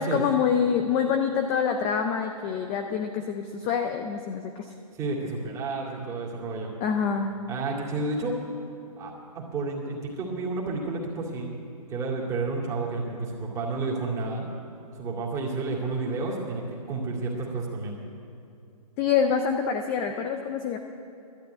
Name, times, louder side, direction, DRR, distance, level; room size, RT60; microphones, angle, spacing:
voice 1, 0.0-4.7 6.8-7.3 19.0-20.8, left 7 dB, 15° left, 6 dB, 0.4 m, -26 dB
voice 2, 4.9-6.7 7.5-8.4 9.0-11.5 11.9-14.4 15.0-18.0, right 3 dB, 15° right, -3 dB, 2.3 m, -31 dB
12.5 x 10.0 x 9.2 m, 2.6 s
hypercardioid pair, 155°, 20 cm